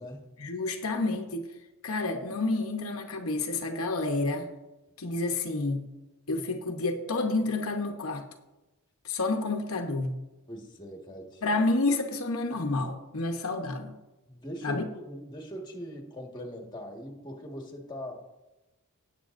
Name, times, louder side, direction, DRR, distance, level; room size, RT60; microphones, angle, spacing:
voice 1, 0.4-1.4 1.8-4.5 5.0-5.8 6.3-8.2 9.0-10.2 11.4-14.0 14.6-14.9, left 2 dB, 70° left, 4 dB, 0.9 m, -29 dB
voice 2, 10.5-11.4 14.3-18.3, equal, 20° left, 1 dB, 1.6 m, -41 dB
18.0 x 8.3 x 2.6 m, 1.0 s
head